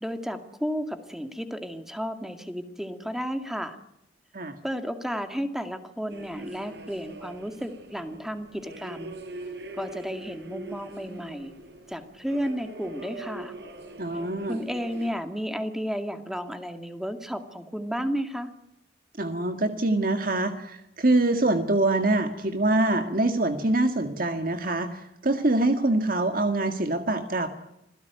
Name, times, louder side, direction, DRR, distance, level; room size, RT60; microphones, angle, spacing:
voice 1, 0.0-3.8 4.6-9.2 9.8-11.5 11.9-13.5 14.5-18.5, equal, ahead, 7 dB, 2.2 m, -32 dB
sound 1, 6.1-15.1, right 2 dB, 65° right, 5.5 m, -42 dB
voice 2, 14.0-14.6 19.2-27.5, right 2 dB, 50° right, 7 dB, 1.9 m, -24 dB
26.5 x 16.5 x 9.3 m, 0.81 s
head